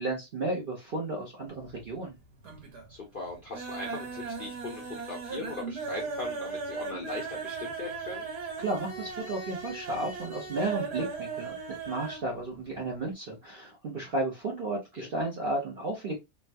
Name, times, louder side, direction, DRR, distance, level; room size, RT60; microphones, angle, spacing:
voice 1, 0.0-2.1 8.6-11.6 11.9-16.2, right 2 dB, 50° right, -1 dB, 0.6 m, -33 dB
sound 1, 1.5-2.1 2.4-2.9 3.2-12.3 12.5-12.6 13.0-13.1, right 4 dB, 70° right, 1.5 m, -38 dB
voice 2, 2.9-8.3 14.9-15.1, left 3 dB, 55° left, -1 dB, 0.5 m, -39 dB
3.2 x 2.2 x 2.5 m, 0.21 s
omnidirectional pair, 1.8 m